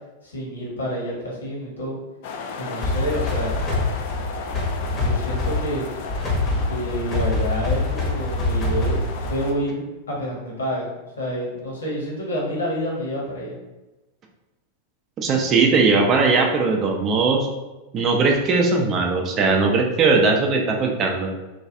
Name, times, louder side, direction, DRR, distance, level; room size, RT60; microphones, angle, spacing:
voice 1, 0.2-2.0 2.6-3.6 4.9-5.9 6.7-10.9 11.2-13.5, equal, 70° left, -5 dB, 1.0 m, -28 dB
sound 1, 2.2-9.5, left 4 dB, 50° left, 0.3 m, -34 dB
sound 2, 2.8-9.6, left 2 dB, 25° left, 0.8 m, -25 dB
voice 2, 15.2-17.5 17.9-21.3, right 4 dB, 30° right, 2 dB, 0.4 m, -19 dB
3.1 x 2.3 x 2.6 m, 1.1 s
figure-of-eight pair, 90°, 0 cm